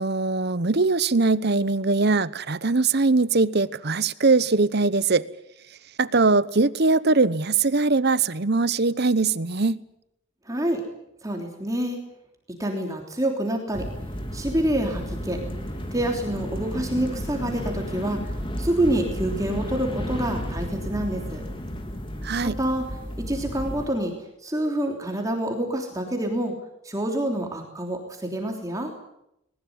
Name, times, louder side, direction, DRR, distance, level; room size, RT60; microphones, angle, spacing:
voice 1, 0.0-5.3 6.0-9.8 22.2-22.5, right 3 dB, 50° right, 17 dB, 0.9 m, -21 dB
voice 2, 10.5-10.8 11.2-12.0 12.6-13.9 14.3-15.4 15.9-21.4 22.4-22.9 23.2-24.1 24.4-26.5 26.8-28.9, right 1 dB, 15° right, 2 dB, 3.2 m, -27 dB
sound 1, 13.7-23.9, equal, 25° left, 3.2 m, -32 dB
20.5 x 19.5 x 9.5 m, 0.81 s
head